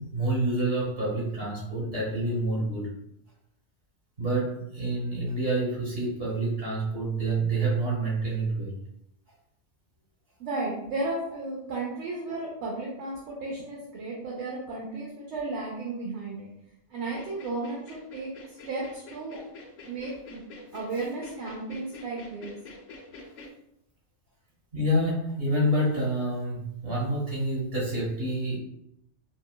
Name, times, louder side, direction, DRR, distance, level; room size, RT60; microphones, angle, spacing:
voice 1, 0.0-2.9 4.2-8.8 24.7-28.6, right 1 dB, 55° right, -5 dB, 1.5 m, -28 dB
voice 2, 10.4-16.5 16.9-19.4 19.8-20.4 20.7-22.6, right 2 dB, 80° right, -4 dB, 0.9 m, -34 dB
sound 1, 17.0-23.5, left 2 dB, 55° left, 0.5 m, -46 dB
3.9 x 2.1 x 2.2 m, 0.79 s
omnidirectional pair, 1.2 m